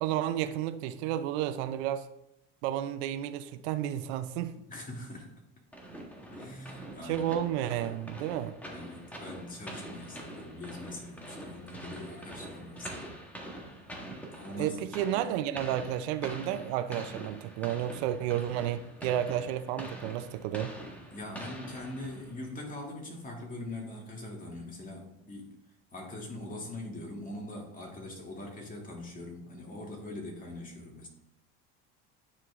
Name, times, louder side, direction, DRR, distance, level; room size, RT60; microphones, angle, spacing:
voice 1, 0.0-2.1 2.6-4.6 7.0-8.6 14.6-20.7, right 11 dB, 80° right, 0.6 m, -32 dB
voice 2, 4.7-5.4 6.3-7.3 8.7-13.1 14.3-14.9 21.1-25.5 25.9-31.1, left 1 dB, 25° left, 2.6 m, -42 dB
sound 1, 5.7-22.5, right 1 dB, 5° left, 1.7 m, -45 dB
9.9 x 4.5 x 3.7 m
supercardioid pair, 95°, 32 cm